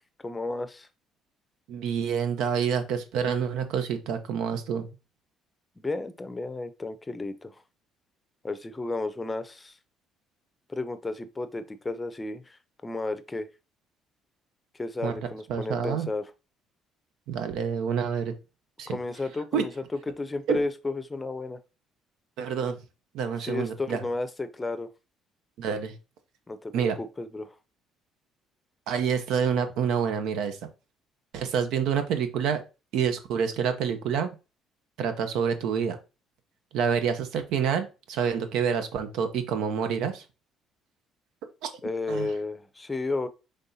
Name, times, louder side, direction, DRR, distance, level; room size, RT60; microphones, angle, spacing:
voice 1, 0.2-0.9 5.8-7.5 8.4-9.8 10.7-12.6 12.8-13.5 14.8-16.2 18.9-19.7 20.1-21.6 23.4-24.9 26.5-27.5 41.8-43.3, left 2 dB, 20° left, 0.6 m, -33 dB
voice 2, 1.7-4.9 15.0-15.2 15.5-16.1 17.3-18.3 18.8-19.0 19.5-19.7 20.5-20.6 22.4-22.8 23.1-24.0 25.6-26.0 26.7-27.0 28.9-30.6 31.3-32.6 32.9-34.3 35.0-36.0 36.7-40.2 41.6-41.7 42.1-42.3, right 7 dB, 80° right, 0.7 m, -27 dB
5.3 x 3.4 x 2.7 m
supercardioid pair, 85°, 0 cm